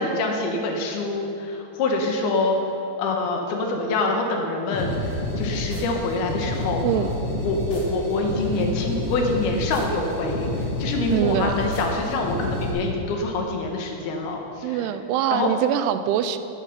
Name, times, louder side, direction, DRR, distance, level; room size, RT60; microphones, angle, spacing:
voice 1, 0.0-2.6 3.0-6.8 7.4-14.8 15.3-15.5, left 2 dB, 80° left, 2 dB, 3.2 m, -26 dB
sound 1, 4.7-12.7, left 1 dB, 40° left, 2.8 m, -29 dB
voice 2, 11.1-11.5 14.6-16.4, right 10 dB, 90° right, 11 dB, 2.6 m, -23 dB
11.0 x 10.0 x 5.8 m, 2.8 s
omnidirectional pair, 4.6 m